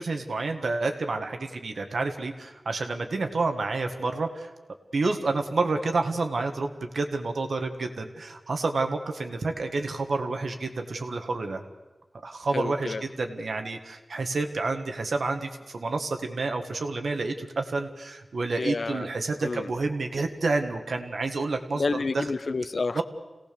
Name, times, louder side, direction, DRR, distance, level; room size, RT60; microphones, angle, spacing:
voice 1, 0.0-4.5 4.9-11.6 12.2-21.8 22.1-22.2 22.9-23.0, right 3 dB, 85° right, 5 dB, 1.7 m, -29 dB
voice 2, 12.5-13.0 18.6-19.1 19.4-19.7 21.7-23.0, left 3 dB, 75° left, 13 dB, 0.8 m, -29 dB
27.0 x 17.5 x 6.9 m, 1.1 s
wide cardioid pair, 60°, 0 cm